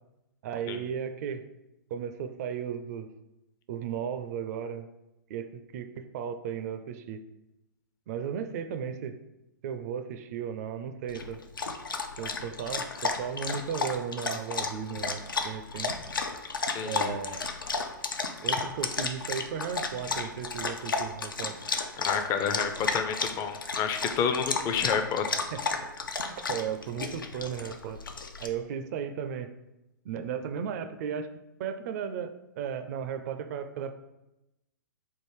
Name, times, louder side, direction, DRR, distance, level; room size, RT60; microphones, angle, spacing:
voice 1, 0.4-1.4 1.9-3.1 3.7-4.9 5.3-7.2 8.1-9.2 9.6-11.4 12.2-15.9 16.8-17.5 18.4-21.5 25.5-25.6 26.2-28.0 28.4-29.5 30.0-31.3 31.6-33.9, right 7 dB, 50° right, 9 dB, 0.4 m, -35 dB
Dog, 11.1-28.5, left 4 dB, 85° left, 0.5 m, -33 dB
voice 2, 16.7-17.1 22.0-25.3, left 7 dB, 30° left, 7 dB, 0.4 m, -29 dB
3.6 x 2.5 x 4.6 m, 0.93 s
figure-of-eight pair, 110°, 11 cm